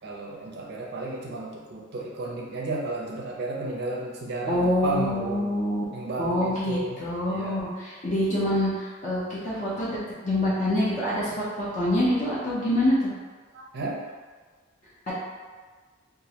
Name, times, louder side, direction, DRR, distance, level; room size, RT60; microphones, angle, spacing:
voice 1, 0.0-5.5 5.9-7.6 13.5-14.1, right 2 dB, 50° right, -3 dB, 0.4 m, -33 dB
voice 2, 4.5-5.8 6.2-10.0 10.2-13.1 15.1-15.2, left 1 dB, 35° left, -8 dB, 0.5 m, -26 dB
2.3 x 2.1 x 2.7 m, 1.4 s
head